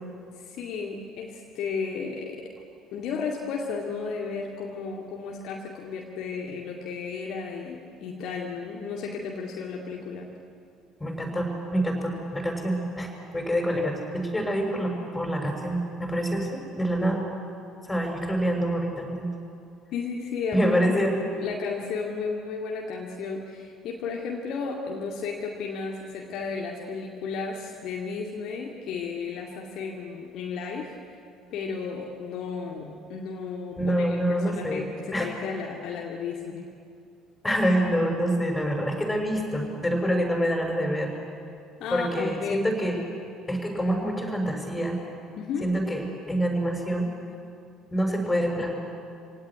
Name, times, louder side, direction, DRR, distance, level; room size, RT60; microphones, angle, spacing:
voice 1, 0.3-2.5 2.9-10.3 19.9-30.9 31.5-36.7 41.8-42.7 45.4-45.8, left 5 dB, 50° left, 0 dB, 2.3 m, -33 dB
voice 2, 11.0-17.3 17.9-19.3 20.5-21.1 33.8-34.8 35.1-35.3 37.4-41.1 41.9-43.0 43.5-45.0 45.6-47.1 47.9-48.7, equal, 10° left, 2 dB, 6.6 m, -26 dB
25.5 x 18.0 x 9.8 m, 2.4 s
figure-of-eight pair, 55°, 0 cm